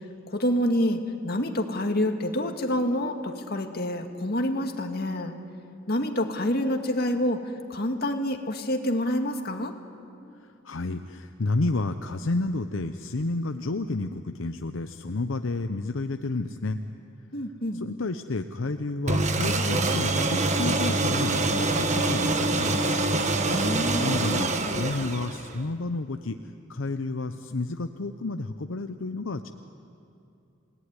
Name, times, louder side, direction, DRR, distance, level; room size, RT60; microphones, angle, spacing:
voice 1, 0.3-5.4 5.9-7.4 7.7-9.7 17.3-17.8 23.4-24.4, left 1 dB, 50° left, 4 dB, 2.1 m, -27 dB
voice 2, 10.4-16.8 17.7-22.9 24.0-29.5, left 2 dB, 75° left, 7 dB, 0.8 m, -31 dB
sound 1, 19.1-25.6, right 2 dB, 35° right, 1.5 m, -25 dB
29.0 x 18.0 x 9.7 m, 2.6 s
head